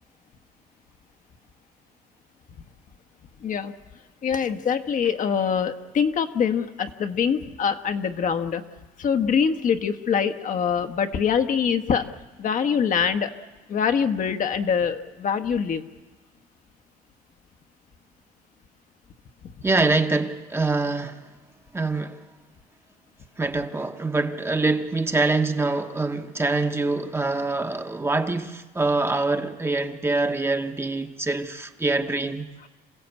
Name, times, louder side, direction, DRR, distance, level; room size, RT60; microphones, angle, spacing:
voice 1, 3.4-3.7 4.2-8.6 9.0-12.1 12.4-13.3 13.7-15.9, left 7 dB, 50° left, 1.2 m, -24 dB
voice 2, 19.6-21.2 21.7-22.2 23.4-32.5, right 3 dB, 15° right, 1.1 m, -25 dB
27.0 x 15.5 x 8.2 m
cardioid pair, 110°, 17 cm